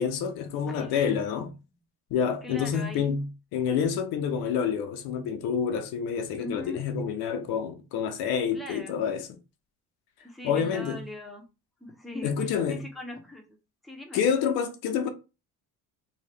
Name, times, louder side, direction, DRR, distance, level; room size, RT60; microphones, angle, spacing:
voice 1, 0.0-1.5 2.1-9.3 10.4-11.0 12.2-12.8 14.1-15.1, left 7 dB, 80° left, 0.7 m, -28 dB
voice 2, 0.7-1.4 2.4-3.1 6.4-6.8 8.5-9.0 10.2-11.4 11.8-13.6 13.8-14.2, left 1 dB, ahead, 0.8 m, -41 dB
2.8 x 2.3 x 3.3 m
cardioid pair, 100°, 38 cm